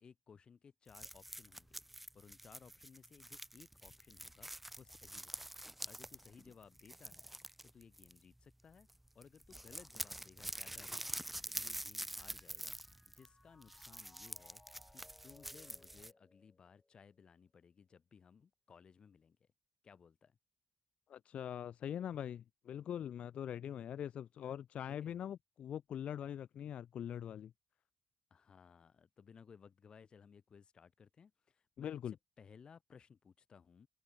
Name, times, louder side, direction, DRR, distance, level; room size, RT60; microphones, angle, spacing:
voice 1, 0.0-1.8 2.1-4.5 4.8-5.5 5.8-7.3 7.6-8.9 9.1-11.1 11.5-12.8 13.1-14.6 14.9-19.5 19.8-20.4 24.9-25.2 28.3-33.9, left 6 dB, 50° left, 3.7 m, -61 dB
sound 1, 0.9-8.5 8.8-9.0 9.2-16.1, right 1 dB, 5° right, 0.3 m, -47 dB
Mallet percussion, 11.7-17.3, left 2 dB, 15° left, 6.9 m, -68 dB
voice 2, 21.1-27.5 31.8-32.1, left 9 dB, 85° left, 0.4 m, -43 dB
wide cardioid pair, 150°, 2 cm